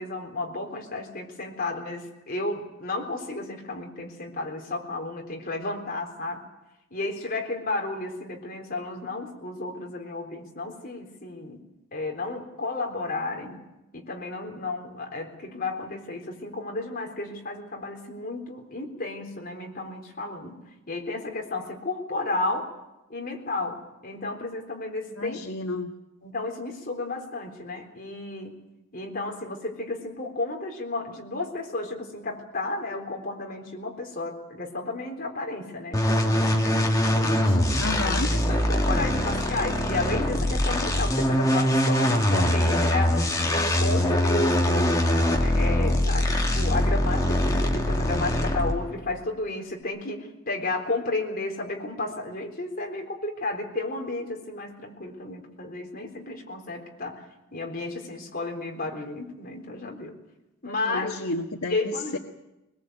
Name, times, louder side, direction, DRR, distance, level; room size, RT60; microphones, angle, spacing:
voice 1, 0.0-6.4 6.9-11.6 11.9-13.7 13.9-20.6 20.9-22.8 23.1-25.4 26.2-28.6 28.9-36.8 37.1-37.6 38.0-57.3 57.5-60.2 60.6-61.1 61.7-62.2, left 2 dB, 45° left, 1 dB, 3.9 m, -32 dB
voice 2, 25.1-25.9 37.1-38.3 60.7-62.2, left 2 dB, 80° left, 2 dB, 1.5 m, -32 dB
sound 1, 35.9-48.9, left 1 dB, 15° left, 2.3 m, -23 dB
22.5 x 21.0 x 8.2 m, 0.95 s
head